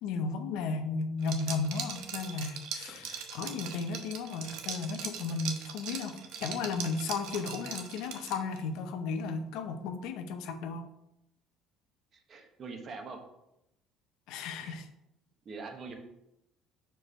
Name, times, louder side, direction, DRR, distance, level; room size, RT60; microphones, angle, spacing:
voice 1, 0.0-10.9 14.3-14.9, left 4 dB, 75° left, 7 dB, 0.6 m, -34 dB
Liquid, 1.2-8.6, right 7 dB, 75° right, 0.7 m, -40 dB
voice 2, 12.1-13.2 14.6-14.8 15.4-16.0, right 4 dB, 40° right, 4 dB, 1.0 m, -44 dB
4.9 x 4.6 x 4.3 m, 0.85 s
cardioid pair, 125°, 0 cm